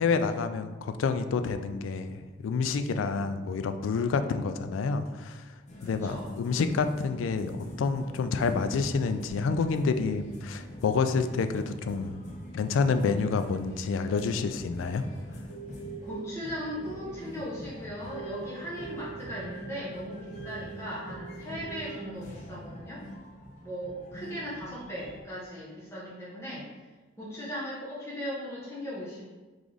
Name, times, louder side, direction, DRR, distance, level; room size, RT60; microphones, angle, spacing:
voice 1, 0.0-5.4 5.8-12.2 12.5-15.0, left 4 dB, 90° left, 9 dB, 0.3 m, -28 dB
sound 1, 5.7-25.2, equal, 35° left, 0.6 m, -45 dB
voice 2, 5.8-6.3 11.1-11.3 15.0-15.2 16.0-23.0 23.6-26.7 27.2-29.2, equal, 15° left, -8 dB, 1.0 m, -38 dB
sound 2, 15.5-22.1, right 7 dB, 70° right, 1.0 m, -45 dB
3.5 x 3.3 x 3.9 m, 1.3 s
head